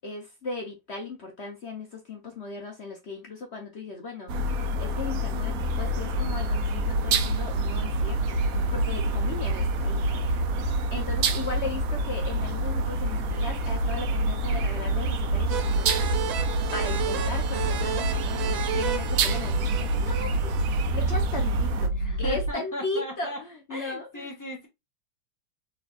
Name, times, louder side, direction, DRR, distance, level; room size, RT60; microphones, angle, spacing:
voice 1, 0.0-8.4 8.7-10.2 10.9-16.4 16.7-24.3, left 3 dB, 55° left, 0.7 m, -37 dB
sound 1, 4.3-21.9, right 3 dB, 75° right, 0.8 m, -31 dB
sound 2, 6.1-22.5, right 1 dB, 80° left, 1.6 m, -28 dB
voice 2, 8.3-8.8 10.6-10.7 21.9-23.4 23.7-24.7, equal, 10° left, 1.0 m, -38 dB
sound 3, 15.5-20.9, right 8 dB, 90° right, 1.5 m, -34 dB
4.1 x 3.5 x 2.4 m
omnidirectional pair, 2.1 m